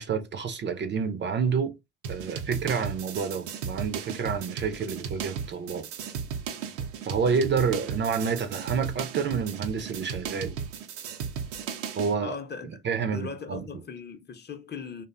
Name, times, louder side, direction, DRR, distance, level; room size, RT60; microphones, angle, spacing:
voice 1, 0.0-1.7 2.1-5.8 7.1-10.5 11.9-12.4 12.8-13.7, right 6 dB, 35° right, 0.5 m, -28 dB
sound 1, 2.0-12.1, right 7 dB, 90° right, 0.5 m, -35 dB
voice 2, 12.2-12.8 13.1-15.1, left 5 dB, 30° left, 0.6 m, -39 dB
2.5 x 2.2 x 2.4 m
hypercardioid pair, 70°, 35 cm